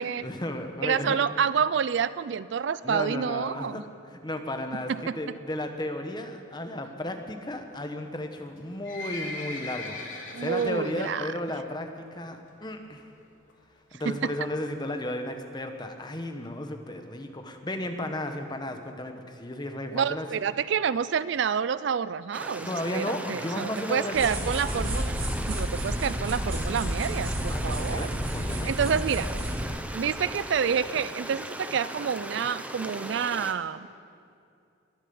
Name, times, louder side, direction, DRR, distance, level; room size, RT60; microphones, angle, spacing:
voice 1, 0.0-1.2 2.8-13.0 13.9-20.3 22.7-24.4 27.4-28.7, left 1 dB, 20° left, 5 dB, 1.1 m, -34 dB
voice 2, 0.8-3.8 4.9-5.1 10.3-11.3 14.1-14.2 19.9-25.2 25.5-28.1 28.6-29.3 29.9-33.9, right 7 dB, 65° right, 16 dB, 0.4 m, -28 dB
Livestock farm animals working animals, 8.5-11.1 11.5-11.8 12.1-12.2 12.8-12.9 13.2-13.3 13.5-13.6 14.1-14.4 15.0-15.1 15.3-15.4 15.6-15.7 15.9-16.0 16.4-16.5 17.0-17.1 17.6-17.7, left 2 dB, 80° left, 2.8 m, -39 dB
Stream, 22.3-33.5, right 1 dB, 5° right, 0.6 m, -38 dB
Arm Scratch Fast, 24.1-29.6, equal, 25° right, 3.1 m, -31 dB
22.0 x 9.0 x 7.0 m, 2.5 s
head